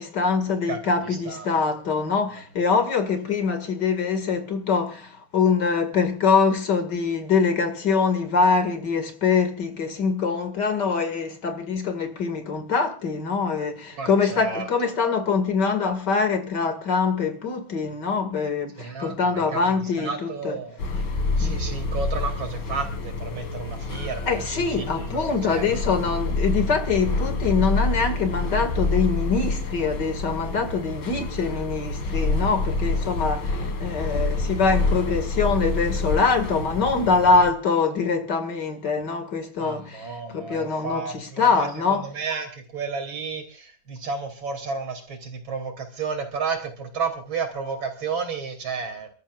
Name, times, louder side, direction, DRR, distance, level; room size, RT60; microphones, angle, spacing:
voice 1, 0.0-20.6 21.4-21.6 24.3-42.1, left 5 dB, 60° left, 2.6 m, -24 dB
voice 2, 14.0-14.7 18.8-19.6 20.0-20.8 21.4-25.6 39.6-49.1, right 5 dB, 75° right, 3.7 m, -32 dB
sound 1, 20.8-37.5, left 3 dB, 85° left, 2.9 m, -27 dB
29.5 x 13.5 x 2.5 m
omnidirectional pair, 2.2 m